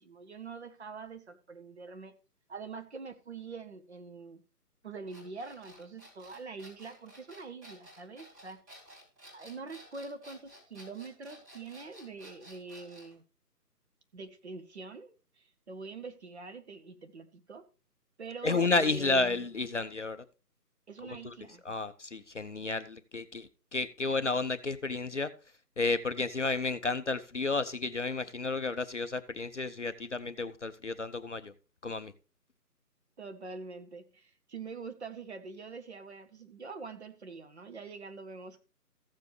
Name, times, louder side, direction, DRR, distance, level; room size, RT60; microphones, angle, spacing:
voice 1, 0.0-2.1 2.5-4.4 4.8-8.6 9.3-13.2 14.1-17.6 18.2-19.4 20.9-21.6 33.2-38.6, right 4 dB, 40° right, 1.2 m, -44 dB
sound 1, 5.1-13.1, equal, 20° right, 4.1 m, -53 dB
voice 2, 18.4-20.2 21.0-21.3 21.7-25.3 25.8-31.5 31.8-32.1, left 3 dB, 50° left, 0.5 m, -32 dB
15.0 x 7.3 x 3.2 m
figure-of-eight pair, 155°, 49 cm